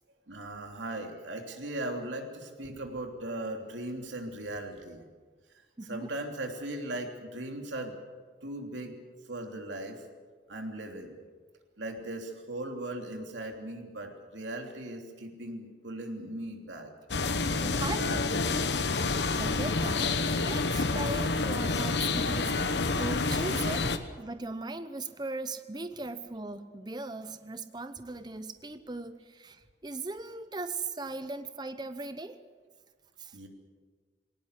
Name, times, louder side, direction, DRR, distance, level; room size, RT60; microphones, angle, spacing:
voice 1, 0.3-5.0 5.8-8.0 8.4-8.9 9.3-10.0 10.5-11.1 11.8-16.9 17.5-17.9 33.3-33.5, right 1 dB, 90° right, 3 dB, 3.2 m, -38 dB
voice 2, 5.8-6.1 17.2-17.4 17.8-18.6 19.3-32.4 33.2-33.3, right 3 dB, 25° right, 11 dB, 0.8 m, -39 dB
sound 1, 17.1-24.0, left 3 dB, 70° left, 1.1 m, -28 dB
20.5 x 18.5 x 8.2 m, 1.5 s
head